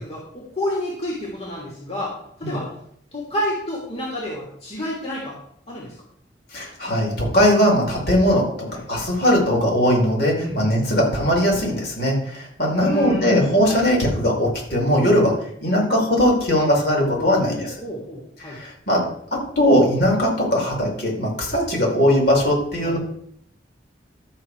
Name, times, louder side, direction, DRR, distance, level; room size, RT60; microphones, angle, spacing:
voice 1, 0.0-2.7 3.1-5.4 5.7-5.9 8.7-8.8 10.4-10.6 12.7-13.9 17.2-18.6 22.8-23.0, left 1 dB, 35° left, -5 dB, 3.3 m, -30 dB
voice 2, 6.5-15.3 15.6-17.7 18.4-19.0 19.3-23.0, equal, 60° left, -2 dB, 5.1 m, -19 dB
13.0 x 7.8 x 4.9 m, 0.67 s
head